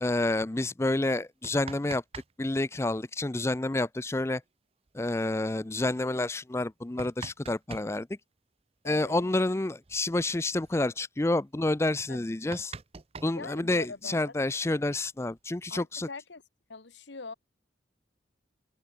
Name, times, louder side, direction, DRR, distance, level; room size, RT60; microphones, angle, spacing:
voice 1, 0.0-2.0 2.4-4.4 4.9-8.1 8.8-12.7 13.2-16.1, left 2 dB, 15° left, 0.4 m, -29 dB
sound 1, 1.2-2.3 2.6-2.7 4.4-4.5 4.9-5.0 5.6-5.7 6.5-7.9 9.4-9.5 9.8-10.0 10.4-10.7 11.3-11.4 11.8-11.9 12.2-14.0 14.9-15.8, right 4 dB, 30° right, 0.6 m, -44 dB
voice 2, 8.8-9.2 12.1-12.4 13.3-14.4 15.7-16.4 16.7-17.3, left 4 dB, 70° left, 1.2 m, -43 dB
open air
head